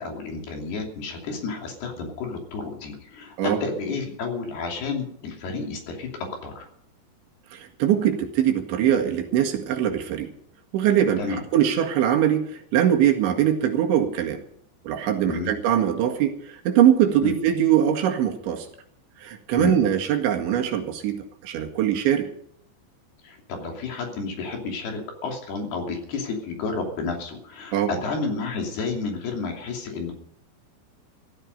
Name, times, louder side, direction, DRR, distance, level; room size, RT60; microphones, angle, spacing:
voice 1, 0.0-6.1 6.4-6.7 11.2-11.4 15.3-15.5 17.2-17.3 19.6-19.8 23.2-30.1, left 4 dB, 60° left, 2 dB, 4.8 m, -31 dB
voice 2, 7.5-10.3 10.7-14.4 14.9-18.7 19.2-22.3 27.7-27.9, right 10 dB, 75° right, 3 dB, 4.3 m, -22 dB
16.5 x 14.0 x 5.3 m, 0.66 s
omnidirectional pair, 5.3 m